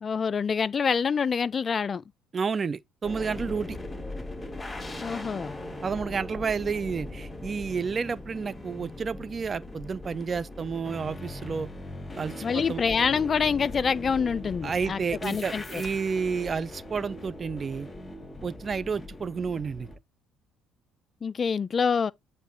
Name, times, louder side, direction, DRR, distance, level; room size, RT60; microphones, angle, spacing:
voice 1, 0.0-2.0 5.0-5.6 12.4-15.8 21.2-22.1, left 6 dB, 35° left, 0.3 m, -26 dB
voice 2, 2.3-3.8 5.8-11.7 12.2-12.8 14.6-17.9 18.4-19.9, right 5 dB, 35° right, 0.5 m, -30 dB
sound 1, 3.0-20.0, left 2 dB, 20° left, 2.3 m, -40 dB
sound 2, 4.7-10.1, right 1 dB, 15° right, 2.0 m, -49 dB
9.1 x 3.2 x 4.3 m
figure-of-eight pair, 50°, 0 cm